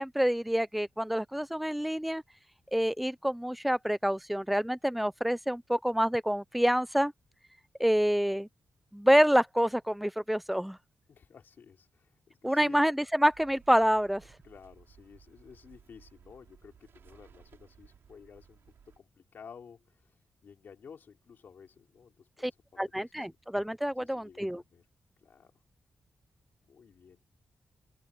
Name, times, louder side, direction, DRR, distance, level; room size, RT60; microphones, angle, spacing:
voice 1, 0.0-2.2 2.7-7.1 7.8-8.5 8.9-10.8 12.4-14.2 22.4-22.5 22.8-24.6, equal, ahead, 0.5 m, -27 dB
voice 2, 11.1-12.8 14.4-20.1 20.4-23.3 24.0-24.8 25.2-25.5 26.6-27.4, left 6 dB, 60° left, 3.8 m, -53 dB
sound 1, 13.3-19.0, right 8 dB, 80° right, 5.8 m, -59 dB
open air
wide cardioid pair, 145°, 4 cm